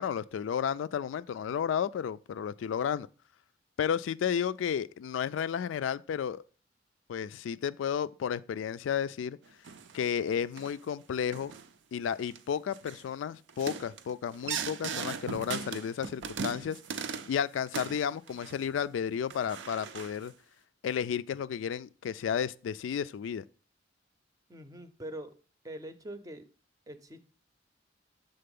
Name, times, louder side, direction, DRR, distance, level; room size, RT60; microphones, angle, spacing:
voice 1, 0.0-3.1 3.8-6.4 7.1-9.4 9.9-11.5 11.9-20.3 20.8-23.4, left 8 dB, 85° left, 0.3 m, -32 dB
sound 1, 9.6-10.1 10.6-10.8 11.3-11.7 12.1-12.4 12.7-13.0 13.5-17.4 17.7-18.8 19.3-20.3, right 6 dB, 70° right, 0.5 m, -39 dB
voice 2, 24.5-25.3 25.6-26.4 26.9-27.2, right 1 dB, 20° right, 0.6 m, -43 dB
6.7 x 4.0 x 5.2 m
head